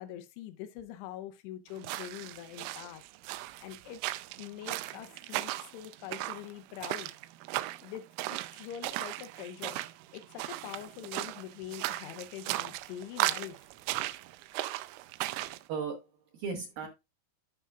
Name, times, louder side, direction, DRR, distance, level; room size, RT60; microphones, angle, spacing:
voice 1, 0.0-3.0 3.6-4.0 4.4-7.1 7.8-9.8 10.1-13.7, left 11 dB, 90° left, 2.4 m, -44 dB
sound 1, 1.8-15.6, right 17 dB, 85° right, 3.1 m, -37 dB
voice 2, 15.7-16.9, right 5 dB, 70° right, 2.4 m, -37 dB
13.5 x 5.6 x 2.4 m
omnidirectional pair, 5.6 m